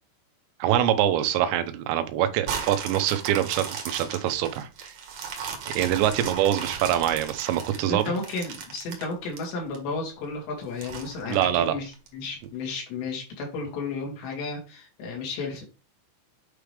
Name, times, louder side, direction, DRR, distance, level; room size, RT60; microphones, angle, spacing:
voice 1, 0.6-4.9 5.8-8.0 11.3-11.7, right 11 dB, 85° right, 9 dB, 3.1 m, -24 dB
sound 1, 2.5-9.8 10.2-10.3 10.8-12.1 12.6-12.7, right 6 dB, 60° right, 2.3 m, -36 dB
voice 2, 7.8-15.7, left 3 dB, 75° left, -1 dB, 4.6 m, -33 dB
9.1 x 4.9 x 3.4 m, 0.31 s
omnidirectional pair, 5.0 m